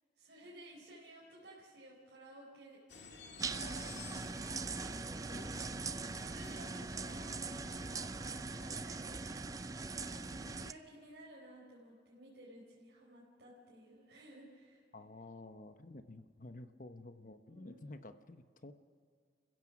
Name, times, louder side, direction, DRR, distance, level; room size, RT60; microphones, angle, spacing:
voice 1, 0.2-2.8 3.4-5.9 6.2-7.4 7.8-9.2 9.5-14.8 17.5-17.8, right 1 dB, 70° right, -5 dB, 4.3 m, -56 dB
sound 1, 2.9-9.0, left 3 dB, 75° left, 2.3 m, -54 dB
sound 2, 3.4-10.7, right 3 dB, 20° right, 0.5 m, -41 dB
voice 2, 14.9-18.7, left 2 dB, 45° left, 9 dB, 0.9 m, -51 dB
29.5 x 16.0 x 6.1 m, 2.2 s
head